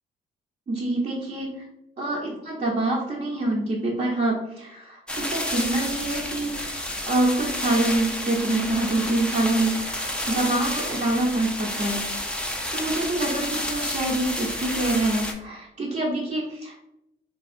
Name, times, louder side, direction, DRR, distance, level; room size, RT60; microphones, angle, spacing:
voice 1, 0.7-1.5 2.0-12.0 12.7-16.8, right 2 dB, 40° right, -4 dB, 0.7 m, -26 dB
sound 1, 5.1-15.3, left 1 dB, 5° left, 0.4 m, -30 dB
3.5 x 2.3 x 2.4 m, 0.86 s
cardioid pair, 90°, 20 cm